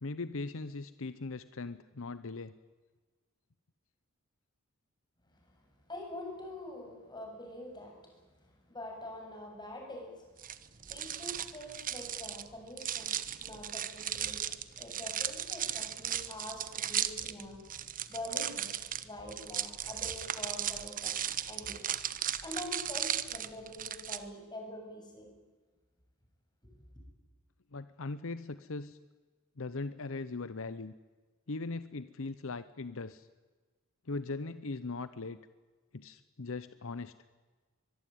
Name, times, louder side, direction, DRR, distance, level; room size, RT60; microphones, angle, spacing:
voice 1, 0.0-2.5 27.7-29.0 29.6-30.9 31.5-33.3 34.1-35.4 35.9-37.1, left 3 dB, 65° left, 13 dB, 0.8 m, -39 dB
voice 2, 5.9-8.0 8.7-10.1 10.9-13.1 13.4-17.6 18.1-18.7 19.0-21.8 22.4-25.3 26.6-26.7, left 1 dB, 20° left, 1 dB, 7.7 m, -45 dB
sound 1, 10.4-24.2, right 10 dB, 40° right, 1.1 m, -36 dB
24.0 x 21.5 x 9.3 m, 1.3 s
head